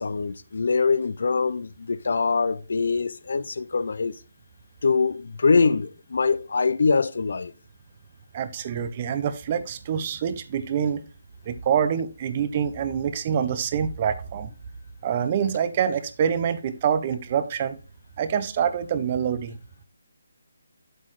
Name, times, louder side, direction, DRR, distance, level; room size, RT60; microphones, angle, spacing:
voice 1, 0.0-4.1 4.8-7.5, left 4 dB, 55° left, 0.5 m, -23 dB
voice 2, 8.3-11.0 11.5-14.5 15.0-17.8 18.2-19.6, right 8 dB, 25° right, 0.5 m, -26 dB
7.7 x 6.1 x 3.1 m
hypercardioid pair, 175°, 0 cm